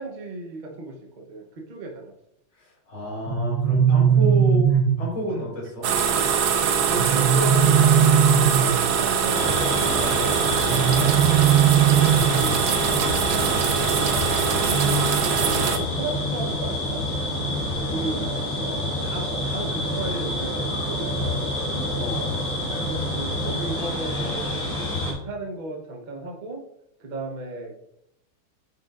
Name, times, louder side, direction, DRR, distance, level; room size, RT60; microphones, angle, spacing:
voice 1, 0.0-2.1 6.8-8.2 8.5-11.1 11.8-12.5 12.9-13.5 14.6-17.1 17.8-18.2 19.0-21.9 22.7-24.5 24.7-26.6 27.0-27.7, right 2 dB, 40° right, 1 dB, 0.7 m, -35 dB
voice 2, 2.6-4.7 5.0-5.9 18.0-18.9 22.0-22.4, equal, 80° left, -5 dB, 4.1 m, -31 dB
sound 1, 3.3-5.2 6.9-8.9 10.7-12.6, right 8 dB, 90° right, 0.7 m, -19 dB
sound 2, 5.8-15.8, right 7 dB, 65° right, 1.0 m, -23 dB
sound 3, 9.3-25.1, left 1 dB, 20° left, 2.6 m, -27 dB
9.3 x 5.8 x 2.5 m, 0.75 s
omnidirectional pair, 2.3 m